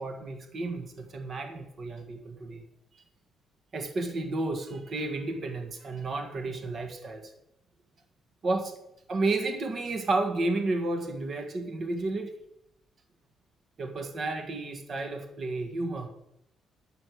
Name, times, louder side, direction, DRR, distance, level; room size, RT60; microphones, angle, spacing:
voice 1, 0.0-2.6 3.7-7.3 8.4-8.8 9.1-12.4 13.8-16.1, right 2 dB, 50° right, 5 dB, 1.7 m, -32 dB
9.6 x 7.7 x 8.3 m, 0.81 s
cardioid pair, 90°, 0 cm